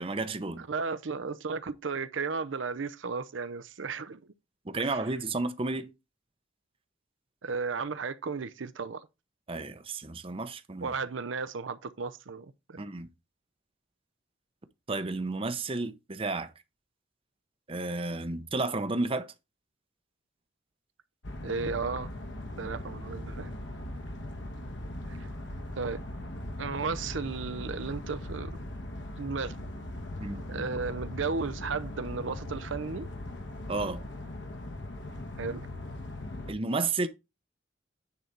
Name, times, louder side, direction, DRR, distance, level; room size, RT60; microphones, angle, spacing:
voice 1, 0.0-0.6 4.7-5.9 9.5-10.9 12.8-13.1 14.9-16.5 17.7-19.3 30.2-30.5 33.7-34.0 36.5-37.1, right 3 dB, 30° right, 0.7 m, -32 dB
voice 2, 0.6-4.3 4.8-5.1 7.4-9.1 10.8-12.8 21.4-22.1 22.6-23.6 25.1-25.3 25.8-26.0 26.6-28.6 29.2-29.6 30.5-33.1 35.4-35.7, right 4 dB, 75° right, 0.7 m, -34 dB
sound 1, 21.2-36.5, left 1 dB, 65° left, 1.3 m, -39 dB
9.7 x 3.9 x 4.4 m
head